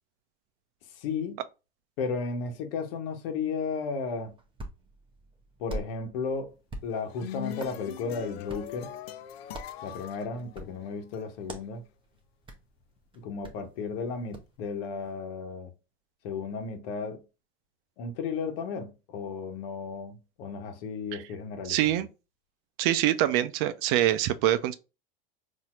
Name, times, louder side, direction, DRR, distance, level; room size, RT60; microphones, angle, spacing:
voice 1, 0.9-1.4 2.0-4.3 5.6-6.5 6.8-8.9 9.8-11.8 13.2-15.7 16.2-17.2 18.0-22.0, left 5 dB, 70° left, 1.0 m, -34 dB
Hands, 4.2-14.6, right 1 dB, 15° right, 0.8 m, -46 dB
sound 1, 6.9-11.2, left 11 dB, 85° left, 0.5 m, -41 dB
voice 2, 21.7-22.1 22.8-24.7, right 13 dB, 55° right, 0.5 m, -24 dB
4.2 x 2.7 x 2.4 m
hypercardioid pair, 100°, 30 cm